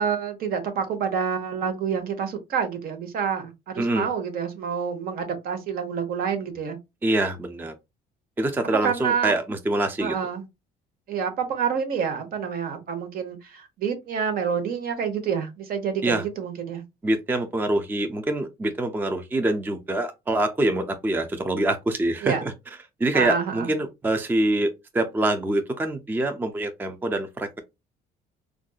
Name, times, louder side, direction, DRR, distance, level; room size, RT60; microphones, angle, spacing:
voice 1, 0.0-6.8 8.8-9.3 10.0-10.5 11.1-16.8 22.2-22.4 23.1-23.7, right 7 dB, 60° right, 0.9 m, -28 dB
voice 2, 3.8-4.1 7.0-7.7 8.4-10.2 16.0-16.2 17.0-22.5 23.0-27.6, right 1 dB, 10° right, 0.4 m, -25 dB
3.6 x 2.5 x 2.3 m
cardioid pair, 110°, 17 cm